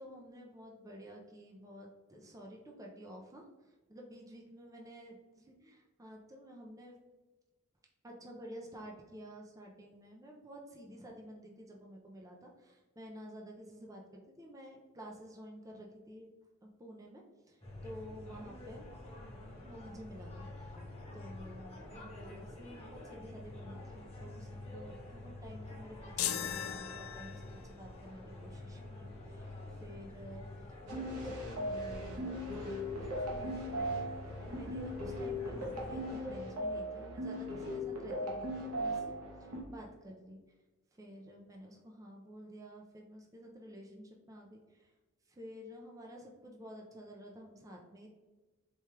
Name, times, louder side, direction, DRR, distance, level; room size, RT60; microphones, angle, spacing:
voice 1, 0.0-3.4 3.9-5.2 5.5-7.0 8.0-14.0 14.3-16.3 16.6-17.2 17.5-18.9 19.6-20.7 21.1-29.5 29.8-30.5 30.9-33.7 34.5-39.1 39.4-40.4 40.9-44.9 45.3-48.1, equal, 15° right, -1 dB, 0.4 m, -51 dB
sound 1, 17.6-36.2, left 1 dB, 25° left, 0.9 m, -48 dB
sound 2, 26.2-27.7, left 10 dB, 70° left, 0.3 m, -37 dB
sound 3, 30.9-39.6, equal, 75° right, 1.0 m, -38 dB
4.4 x 2.3 x 3.1 m, 1.2 s
head